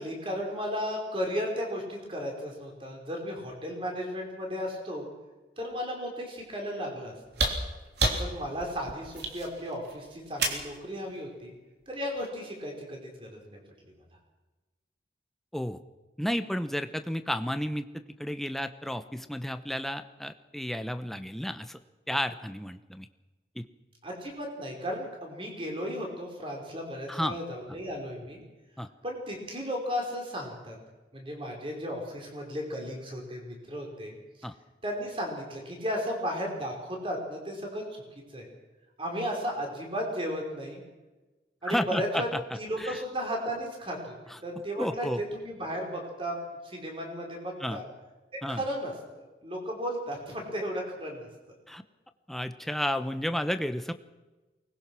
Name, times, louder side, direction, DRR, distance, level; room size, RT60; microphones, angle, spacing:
voice 1, 0.0-5.0 5.6-7.5 8.2-11.5 11.9-13.6 24.0-28.4 29.0-30.8 31.1-34.1 34.8-38.0 38.3-38.5 39.0-40.8 41.6-42.3 42.6-44.1 44.4-46.4 46.6-47.8 48.3-48.9 49.4-51.3, equal, 30° right, 1 dB, 4.8 m, -34 dB
sound 1, 7.3-10.8 12.2-12.3, right 2 dB, 65° right, 3.4 m, -30 dB
voice 2, 16.2-21.8 22.1-23.1 23.6-23.7 27.1-27.4 28.8-28.9 34.4-34.5 41.6-43.0 44.3-44.4 44.8-45.2 47.6-47.8 48.4-48.6 51.7-51.8 52.3-53.9, equal, ahead, 9 dB, 0.8 m, -32 dB
24.0 x 20.0 x 6.2 m, 1.2 s
head